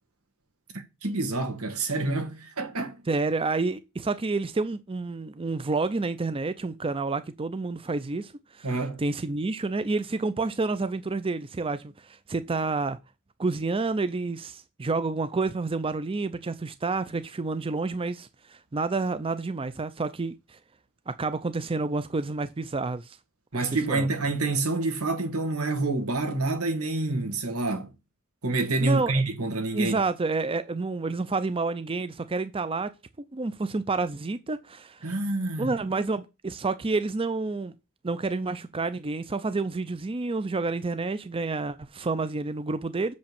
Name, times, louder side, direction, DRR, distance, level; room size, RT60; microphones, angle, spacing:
voice 1, 0.7-3.0 8.6-9.0 23.5-27.9 28.4-30.0 35.0-35.7, right 2 dB, 85° right, 2.2 m, -28 dB
voice 2, 3.1-8.7 9.0-13.0 13.4-20.6 21.1-23.2 23.9-24.1 28.8-29.1 29.7-32.9 33.2-35.1 35.6-37.7 38.0-43.1, right 3 dB, 25° right, 0.5 m, -29 dB
6.8 x 5.3 x 7.0 m
head